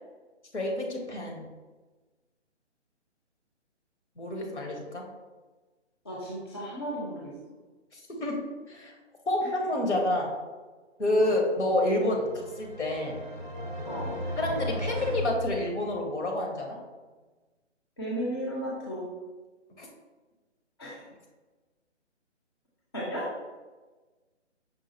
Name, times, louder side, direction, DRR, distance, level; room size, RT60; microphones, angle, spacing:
voice 1, 0.5-1.4 4.2-5.0 7.9-8.4 8.7-8.9 9.3-10.3 11.0-13.1 14.4-16.8 19.8-19.9, left 1 dB, 75° left, 1 dB, 1.1 m, -28 dB
voice 2, 6.0-7.3 11.2-11.3 13.8-14.1 18.0-19.0 20.8-21.0 22.9-23.3, equal, 20° left, -5 dB, 0.5 m, -34 dB
sound 1, 11.8-16.3, equal, 45° right, 0.5 m, -36 dB
5.5 x 2.4 x 2.7 m, 1.3 s
figure-of-eight pair, 145°, 35 cm